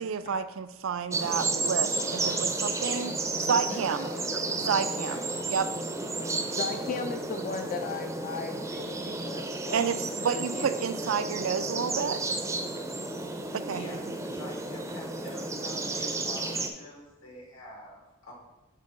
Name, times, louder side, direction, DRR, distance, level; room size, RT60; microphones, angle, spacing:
voice 1, 0.0-4.1 4.7-5.2 5.5-5.7 9.7-12.2 13.5-13.8, right 6 dB, 70° right, 12 dB, 0.4 m, -30 dB
sound 1, 1.1-16.7, right 3 dB, 15° right, 0.5 m, -32 dB
voice 2, 3.5-5.5 6.8-7.0 10.2-11.1 13.7-18.3, left 1 dB, 85° left, -2 dB, 2.2 m, -45 dB
voice 3, 6.5-9.9 10.3-10.8, left 4 dB, 40° left, 6 dB, 0.3 m, -37 dB
6.6 x 3.8 x 4.9 m, 1.1 s
head